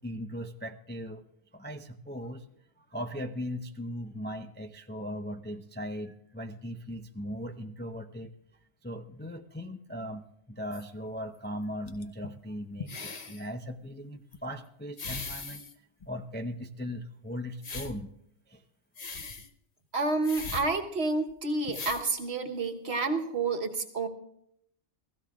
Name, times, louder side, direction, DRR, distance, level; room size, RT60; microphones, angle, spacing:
voice 1, 0.0-2.5 2.8-8.3 8.8-15.6 16.1-18.1 18.5-18.6 19.1-19.2, equal, 15° left, 5 dB, 0.4 m, -39 dB
sound 1, 10.7-10.8 11.9-12.3 12.8-13.5 14.3-14.4 15.0-15.7 16.0-16.1 17.6-18.0 19.0-19.5 20.2-20.7 21.3-21.4 21.6-22.1 23.0-23.1, left 4 dB, 35° left, 0.9 m, -39 dB
voice 2, 19.9-24.1, right 3 dB, 65° right, 4 dB, 1.5 m, -29 dB
29.5 x 16.0 x 2.4 m, 0.73 s
omnidirectional pair, 1.2 m